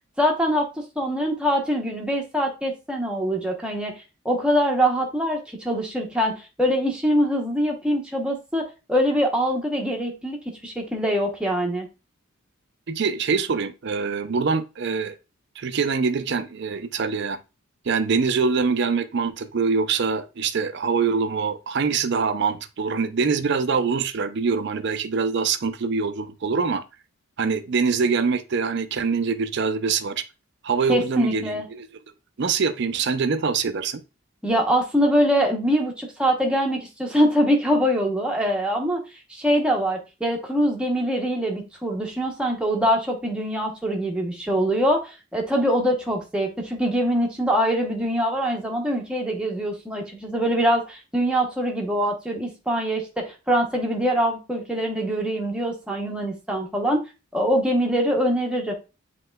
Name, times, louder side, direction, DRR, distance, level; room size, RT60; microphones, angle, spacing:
voice 1, 0.2-0.7 1.0-3.9 4.2-10.4 10.6-11.9 30.9-31.7 34.4-57.0 57.3-58.7, equal, 5° right, 0.7 m, -23 dB
voice 2, 12.9-15.1 15.6-17.4 17.9-26.8 27.4-30.2 30.6-31.9 32.4-34.0, right 5 dB, 50° right, 0.4 m, -24 dB
7.7 x 2.9 x 2.2 m
head